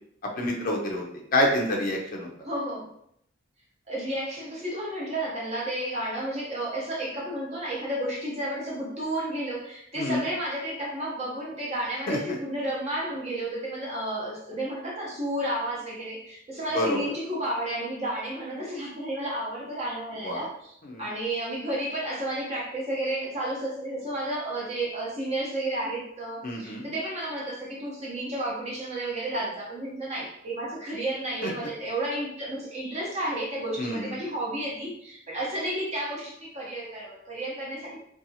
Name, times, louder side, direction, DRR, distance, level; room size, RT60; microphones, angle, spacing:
voice 1, 0.2-1.0 1.3-2.3 10.0-10.2 12.1-12.2 16.7-17.0 20.2-20.4 20.8-21.1 26.4-26.8 31.4-31.5 33.8-34.2, left 1 dB, 45° left, -1 dB, 0.4 m, -27 dB
voice 2, 2.4-2.9 3.9-20.7 21.0-38.0, right 1 dB, 35° right, -5 dB, 0.7 m, -32 dB
2.7 x 2.3 x 2.6 m, 0.71 s
head